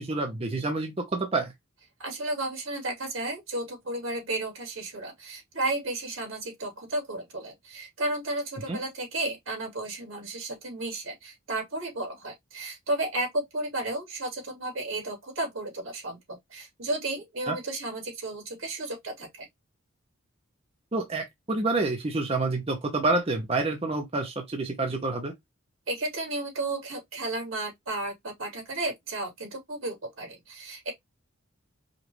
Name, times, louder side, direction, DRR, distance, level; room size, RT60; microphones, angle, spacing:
voice 1, 0.0-1.5 8.7-8.8 17.5-17.6 20.9-25.3, right 3 dB, 30° right, 0.7 m, -28 dB
voice 2, 2.0-19.5 25.9-30.9, right 2 dB, 85° right, 2.5 m, -33 dB
5.0 x 2.4 x 2.9 m
head